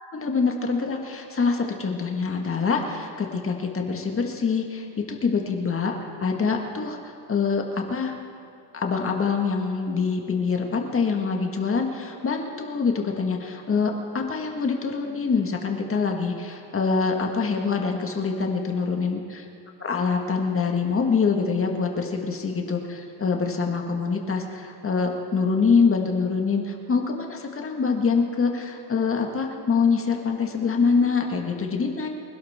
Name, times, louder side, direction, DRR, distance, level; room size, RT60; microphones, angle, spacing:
voice 1, 0.1-7.0 7.3-8.2 8.7-19.4 19.8-32.1, left 5 dB, 30° left, 2 dB, 1.8 m, -25 dB
25.5 x 11.5 x 3.7 m, 2.5 s
supercardioid pair, 95°, 40 cm